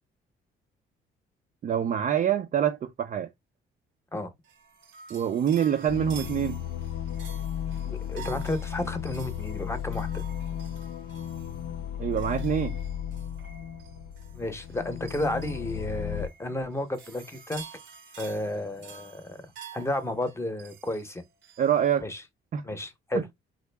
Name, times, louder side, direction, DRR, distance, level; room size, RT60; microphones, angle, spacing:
voice 1, 1.6-3.3 5.1-6.6 12.0-12.8 21.6-22.0 22.5-22.6 23.1-23.2, right 9 dB, 45° right, 0.4 m, -25 dB
sound 1, 4.4-21.9, right 7 dB, 65° right, 0.8 m, -49 dB
sound 2, 5.9-16.3, left 10 dB, 70° left, 0.5 m, -35 dB
voice 2, 7.8-10.2 14.3-17.6 18.2-19.4 19.7-21.2 22.0-22.2 22.6-23.3, left 1 dB, 15° left, 0.8 m, -32 dB
3.7 x 2.1 x 3.3 m
cardioid pair, 90°, 20 cm